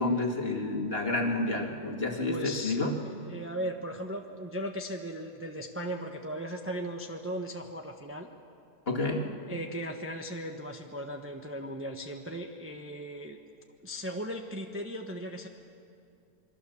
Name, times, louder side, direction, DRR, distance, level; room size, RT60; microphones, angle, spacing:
voice 1, 0.0-3.0 8.9-9.3, left 2 dB, 35° left, 1 dB, 2.3 m, -29 dB
voice 2, 2.3-8.3 9.5-13.4 13.8-15.5, equal, 10° right, 2 dB, 1.1 m, -37 dB
27.5 x 22.5 x 7.1 m, 2.5 s
omnidirectional pair, 1.8 m